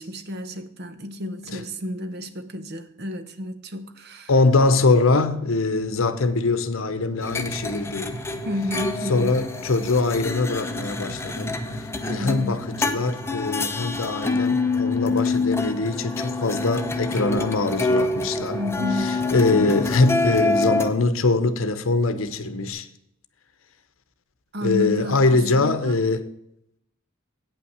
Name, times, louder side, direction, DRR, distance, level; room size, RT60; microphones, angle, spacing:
voice 1, 0.0-4.3 8.4-9.4 12.1-12.7 18.5-19.2 24.5-26.0, left 1 dB, 50° right, 0.9 m, -31 dB
voice 2, 4.3-8.2 9.1-11.6 12.1-18.6 19.3-22.9 24.6-26.2, left 3 dB, 75° left, 0.8 m, -22 dB
sound 1, 5.8-22.7, equal, 70° right, 4.9 m, -41 dB
sound 2, 7.2-20.9, left 3 dB, 10° left, 0.7 m, -27 dB
8.7 x 5.8 x 7.2 m
head